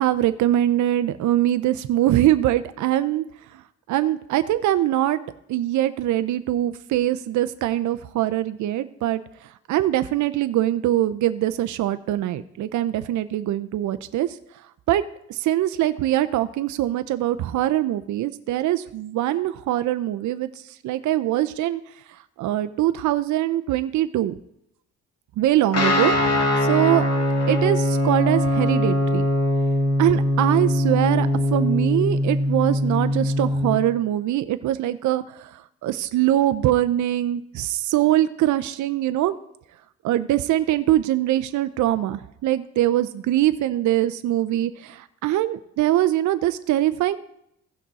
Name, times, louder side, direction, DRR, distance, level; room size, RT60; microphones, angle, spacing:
voice 1, 0.0-3.3 3.9-5.2 5.5-9.2 9.7-14.4 14.9-15.0 15.3-21.8 22.4-24.4 25.4-26.2 26.6-27.0 27.5-29.2 30.0-39.4 40.0-47.2, right 13 dB, 70° right, 11 dB, 0.6 m, -22 dB
Guitar, 25.7-33.8, left 1 dB, 55° left, 2.5 m, -21 dB
15.5 x 6.0 x 4.1 m, 0.77 s
cardioid pair, 90°, 30 cm